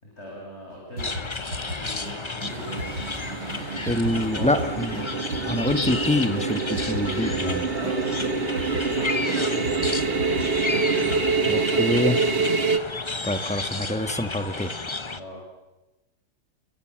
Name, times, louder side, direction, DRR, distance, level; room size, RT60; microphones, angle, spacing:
voice 1, 0.0-4.7 7.7-9.9 15.1-15.5, equal, 35° left, -2 dB, 7.0 m, -40 dB
sound 1, 1.0-15.2, left 3 dB, 20° left, 0.9 m, -32 dB
sound 2, 1.0-3.2 3.5-6.1 6.4-6.5 6.8-9.0 9.3-11.5, equal, 70° right, 8.1 m, -37 dB
sound 3, 2.5-12.8, right 4 dB, 35° right, 1.4 m, -26 dB
voice 2, 3.9-5.0 5.4-7.7 11.5-12.2 13.2-14.7, left 1 dB, 5° left, 10 dB, 1.2 m, -25 dB
29.5 x 23.0 x 7.6 m, 1.0 s
omnidirectional pair, 1.9 m